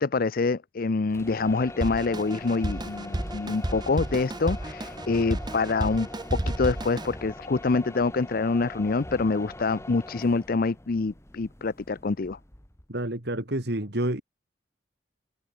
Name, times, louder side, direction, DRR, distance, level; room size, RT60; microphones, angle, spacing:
voice 1, 0.0-12.4, left 3 dB, 55° left, 0.6 m, -26 dB
sound 1, 1.0-12.9, left 1 dB, 15° left, 1.8 m, -43 dB
Drum kit, 1.8-7.1, right 1 dB, 25° right, 0.9 m, -32 dB
voice 2, 12.9-14.2, right 1 dB, 65° right, 3.0 m, -29 dB
open air
head